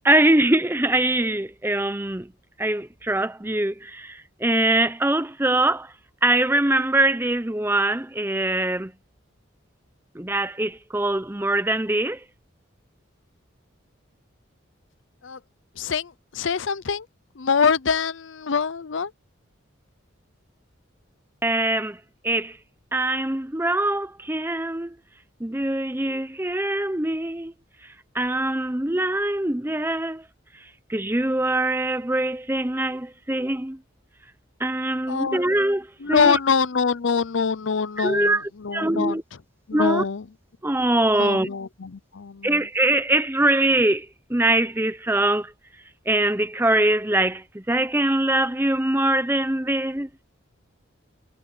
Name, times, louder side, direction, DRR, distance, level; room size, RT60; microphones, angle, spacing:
voice 1, 0.0-2.3 2.6-5.9 6.2-8.9 10.1-12.2 21.4-22.6 22.9-25.0 25.4-27.5 27.8-30.2 30.6-33.8 34.6-36.4 38.0-39.2 39.7-40.0 40.6-41.5 42.4-45.5 46.1-50.1, right 1 dB, 10° right, 0.7 m, -23 dB
voice 2, 15.8-17.1 17.4-19.1 35.1-35.5 36.0-39.2 39.7-40.2 41.1-42.6, left 5 dB, 70° left, 0.6 m, -24 dB
head